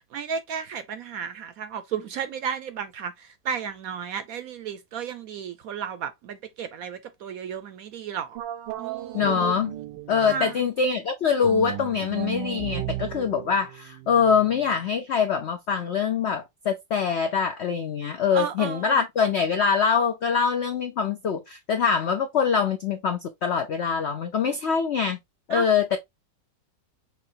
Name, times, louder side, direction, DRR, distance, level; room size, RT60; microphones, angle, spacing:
voice 1, 0.0-8.4 8.8-9.5 10.3-10.6 18.3-19.0 25.5-25.7, right 7 dB, 70° right, 0.9 m, -33 dB
sound 1, 8.3-10.6 11.4-14.7, right 13 dB, 85° right, 1.3 m, -35 dB
voice 2, 9.1-9.7 10.1-25.2 25.5-26.0, left 6 dB, 70° left, 0.6 m, -24 dB
5.7 x 3.1 x 2.7 m
omnidirectional pair, 1.9 m